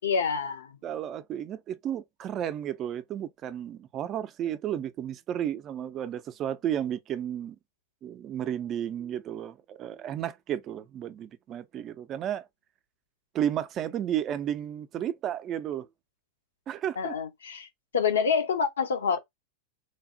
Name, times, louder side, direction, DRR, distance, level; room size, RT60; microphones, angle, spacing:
voice 1, 0.0-0.7 17.0-17.7 17.9-19.2, left 6 dB, 75° left, 0.6 m, -27 dB
voice 2, 0.8-7.6 8.0-12.4 13.3-15.9 16.7-17.1, right 10 dB, 35° right, 0.4 m, -33 dB
3.2 x 2.0 x 2.6 m
hypercardioid pair, 95°, 0 cm